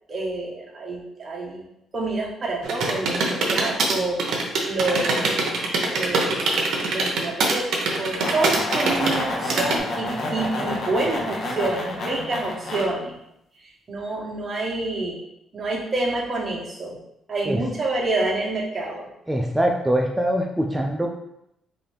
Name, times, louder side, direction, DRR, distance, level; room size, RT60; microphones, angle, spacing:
voice 1, 0.1-1.6 1.9-4.2 4.6-5.4 5.9-7.6 8.0-13.2 13.9-15.2 15.5-17.0 17.3-19.1, right 2 dB, 35° right, -3 dB, 1.2 m, -28 dB
sound 1, 2.6-9.8, right 3 dB, 75° right, 0.8 m, -23 dB
sound 2, 7.9-12.8, left 2 dB, 60° left, 1.0 m, -29 dB
voice 2, 19.3-21.1, equal, 10° right, 1 dB, 0.4 m, -23 dB
3.9 x 2.7 x 3.4 m, 0.80 s
cardioid pair, 90°, 0 cm